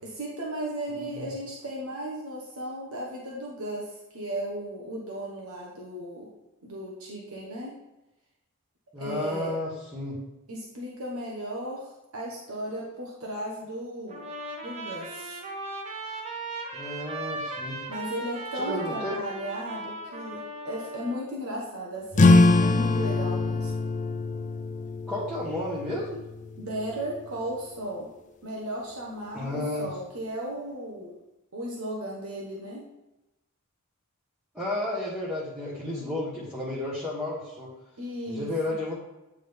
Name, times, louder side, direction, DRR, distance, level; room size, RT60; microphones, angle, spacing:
voice 1, 0.0-6.3 6.6-7.7 9.0-9.5 10.5-14.3 14.6-15.4 17.9-23.7 26.6-28.1 28.4-31.1 31.5-32.8 38.0-38.5, right 1 dB, 75° right, -3 dB, 1.2 m, -35 dB
voice 2, 0.9-1.2 8.9-10.2 16.7-17.8 18.5-19.2 25.1-26.2 29.3-29.9 34.5-37.7 38.3-38.9, left 1 dB, 5° right, -9 dB, 1.3 m, -32 dB
Trumpet, 14.1-21.3, right 2 dB, 30° right, 0.9 m, -37 dB
sound 1, 22.1-27.2, left 2 dB, 35° left, 0.5 m, -23 dB
9.2 x 3.7 x 3.5 m, 0.97 s
head